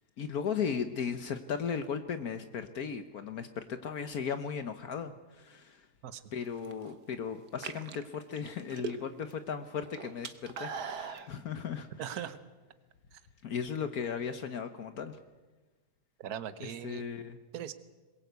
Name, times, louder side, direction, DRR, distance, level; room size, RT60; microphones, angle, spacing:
voice 1, 0.2-5.9 6.3-12.3 13.4-15.2 16.6-17.4, left 7 dB, 70° left, 9 dB, 1.5 m, -36 dB
sound 1, 6.4-6.9 7.5-9.3 9.6-11.3, right 5 dB, 85° right, 1.8 m, -40 dB
voice 2, 12.0-12.4 16.2-17.0 17.5-17.7, right 9 dB, 70° right, 12 dB, 1.5 m, -39 dB
22.5 x 21.0 x 8.1 m, 1.2 s
omnidirectional pair, 1.7 m